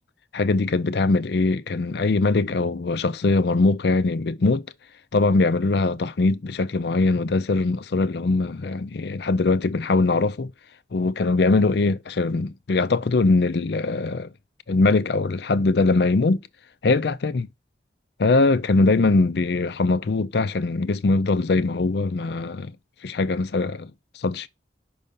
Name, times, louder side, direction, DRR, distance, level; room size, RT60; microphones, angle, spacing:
voice 1, 0.3-4.7 5.1-10.5 10.9-14.3 14.7-16.4 16.8-17.5 18.2-22.7 23.0-24.5, left 3 dB, 60° left, 0.5 m, -22 dB
5.5 x 5.2 x 5.3 m
head